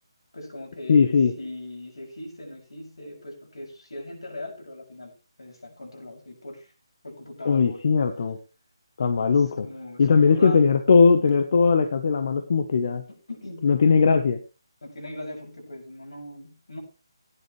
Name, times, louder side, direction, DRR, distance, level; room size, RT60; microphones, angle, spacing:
voice 1, 0.3-5.1 5.4-6.7 7.0-7.8 9.4-10.8 13.1-13.7 14.8-16.8, left 1 dB, 85° left, 0 dB, 7.1 m, -40 dB
voice 2, 0.9-1.3 7.4-8.4 9.0-9.6 10.0-13.0 13.6-14.4, left 5 dB, 55° left, 8 dB, 1.1 m, -19 dB
16.0 x 10.0 x 3.3 m, 0.32 s
figure-of-eight pair, 155°, 3 cm